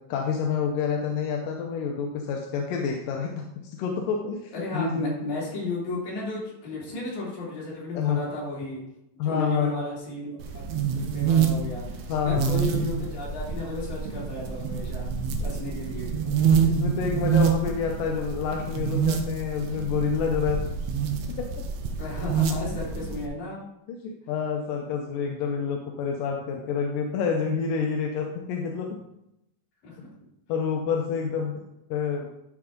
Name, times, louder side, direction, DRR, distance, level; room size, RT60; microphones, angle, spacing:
voice 1, 0.1-3.3 3.8-5.2 7.9-8.2 9.2-9.9 12.1-12.6 15.4-15.5 16.2-16.3 16.6-20.6 21.4-21.5 24.0-28.9 30.5-31.5 31.9-32.3, left 6 dB, 90° left, 1 dB, 2.5 m, -28 dB
voice 2, 4.5-8.8 9.2-10.6 10.9-11.9 12.2-15.1 15.4-16.1 22.0-23.6 25.1-25.4 29.8-30.1, left 2 dB, 65° left, -7 dB, 4.5 m, -34 dB
sound 1, 10.4-23.3, right 6 dB, 70° right, 1.6 m, -27 dB
12.0 x 4.8 x 3.8 m, 0.84 s
omnidirectional pair, 3.7 m